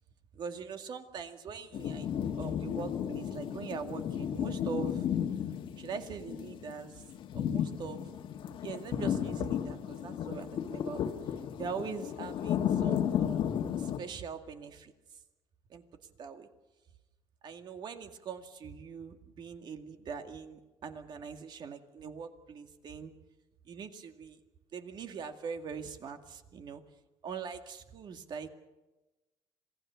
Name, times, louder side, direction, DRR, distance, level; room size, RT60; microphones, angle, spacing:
voice 1, 0.3-5.1 5.8-7.0 7.3-8.1 8.6-15.2 15.7-15.8 16.2-16.5 17.4-23.1 23.7-24.4 24.7-26.8 27.2-28.5, right 6 dB, 50° right, 6 dB, 2.1 m, -42 dB
sound 1, 1.7-14.0, left 9 dB, 65° left, 1.5 m, -34 dB
26.5 x 18.0 x 7.0 m, 1.1 s
cardioid pair, 115°, 9 cm